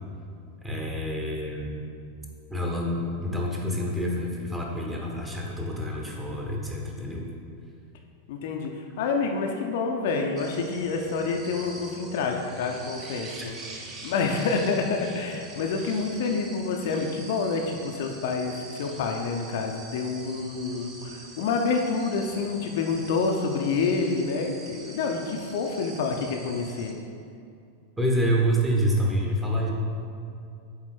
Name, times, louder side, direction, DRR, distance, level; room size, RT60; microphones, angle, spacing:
voice 1, 0.6-1.9 2.5-7.2 13.4-13.5 28.0-29.7, equal, 10° right, -1 dB, 1.2 m, -27 dB
voice 2, 8.3-13.6 14.0-27.0, left 4 dB, 55° left, 2 dB, 0.6 m, -28 dB
sound 1, 10.4-26.9, right 3 dB, 30° right, 0.9 m, -44 dB
8.4 x 3.8 x 4.4 m, 2.5 s
figure-of-eight pair, 90°, 0 cm